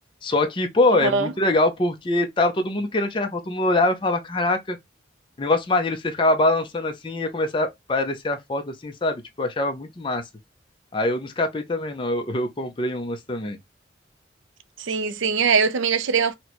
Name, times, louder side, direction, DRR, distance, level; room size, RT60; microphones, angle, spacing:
voice 1, 0.2-4.8 5.4-10.2 10.9-13.6, left 2 dB, 25° left, 0.4 m, -23 dB
voice 2, 0.9-1.3 14.8-16.3, right 5 dB, 90° right, 0.4 m, -22 dB
4.1 x 2.1 x 2.9 m
head